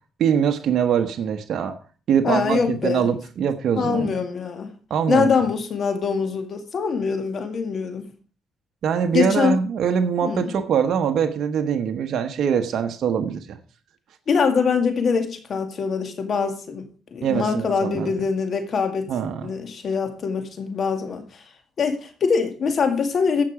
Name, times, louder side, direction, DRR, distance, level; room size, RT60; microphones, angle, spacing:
voice 1, 0.2-1.8 2.1-4.1 4.9-5.3 8.8-13.6 17.2-18.1 19.1-19.5, right 7 dB, 65° right, 1.1 m, -23 dB
voice 2, 2.2-3.1 3.8-4.7 5.1-8.1 9.1-9.6 10.2-10.6 14.3-16.8 17.1-19.1 19.4-21.4 21.8-23.4, left 5 dB, 55° left, 2.3 m, -23 dB
15.0 x 5.9 x 4.9 m
cardioid pair, 90°, 0 cm